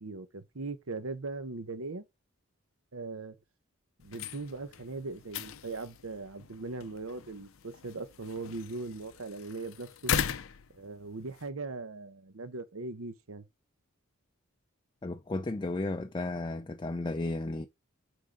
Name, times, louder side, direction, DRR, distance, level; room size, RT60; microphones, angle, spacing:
voice 1, 0.0-2.0 2.9-3.4 4.0-10.1 10.7-13.4, right 3 dB, 85° right, 0.9 m, -40 dB
sound 1, 4.0-11.5, left 7 dB, 75° left, 0.5 m, -39 dB
voice 2, 15.0-17.7, left 2 dB, 20° left, 0.4 m, -34 dB
6.2 x 4.8 x 4.9 m
head